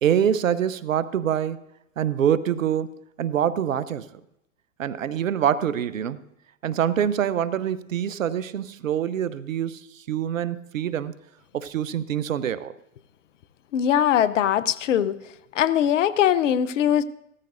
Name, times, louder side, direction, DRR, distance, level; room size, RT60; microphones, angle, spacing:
voice 1, 0.0-1.6 2.0-2.9 3.2-4.1 4.8-6.2 6.6-11.1 11.5-12.7, right 9 dB, 85° right, 16 dB, 0.7 m, -25 dB
voice 2, 13.7-15.2 15.5-17.0, left 10 dB, 70° left, 16 dB, 0.7 m, -21 dB
16.5 x 13.5 x 2.6 m, 0.81 s
hypercardioid pair, 100°, 38 cm